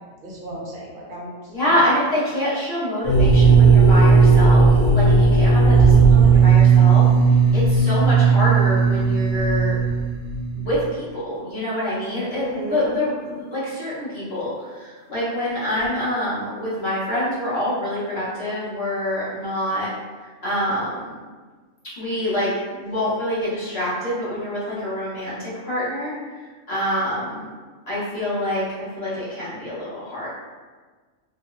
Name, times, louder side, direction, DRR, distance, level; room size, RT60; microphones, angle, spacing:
voice 1, 0.2-1.3 1.6-1.8 12.3-13.0, right 2 dB, 50° right, -4 dB, 0.6 m, -34 dB
voice 2, 1.5-7.1 7.5-9.8 10.6-19.9 20.4-21.1 22.0-26.1 26.7-27.5 27.9-30.3, left 1 dB, 55° left, -10 dB, 1.3 m, -26 dB
sound 1, 3.0-10.8, right 5 dB, 90° left, 1.0 m, -15 dB
2.9 x 2.6 x 2.2 m, 1.4 s
omnidirectional pair, 1.3 m